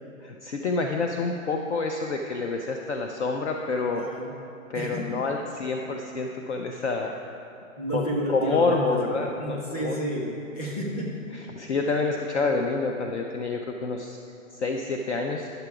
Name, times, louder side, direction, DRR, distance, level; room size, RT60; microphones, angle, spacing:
voice 1, 0.2-4.0 4.7-7.1 7.9-10.0 11.3-14.2 14.5-15.5, left 3 dB, 55° left, 2 dB, 0.6 m, -28 dB
voice 2, 3.9-4.3 4.7-5.2 7.8-11.1, right 1 dB, 25° left, -2 dB, 1.3 m, -31 dB
10.5 x 6.8 x 4.8 m, 2.8 s
hypercardioid pair, 180°, 42 cm